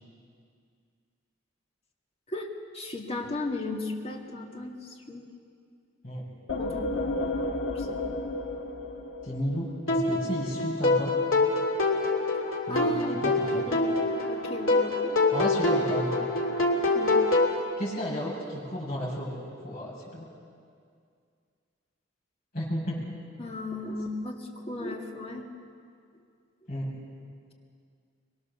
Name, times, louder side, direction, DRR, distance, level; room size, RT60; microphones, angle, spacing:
voice 1, 2.7-5.3 6.6-6.9 7.7-8.1 12.7-13.3 13.7-15.2 16.9-17.3 23.4-25.5, left 2 dB, 30° left, 1 dB, 2.1 m, -36 dB
sound 1, 6.5-10.1, left 2 dB, 65° left, 1.6 m, -32 dB
voice 2, 9.2-11.1 12.7-13.6 15.3-16.2 17.8-19.4 19.6-20.3 22.5-23.1 26.7-26.9, equal, 50° left, -5 dB, 7.4 m, -33 dB
sound 2, 9.9-17.6, left 2 dB, 85° left, 2.8 m, -25 dB
23.0 x 23.0 x 6.9 m, 2.2 s
head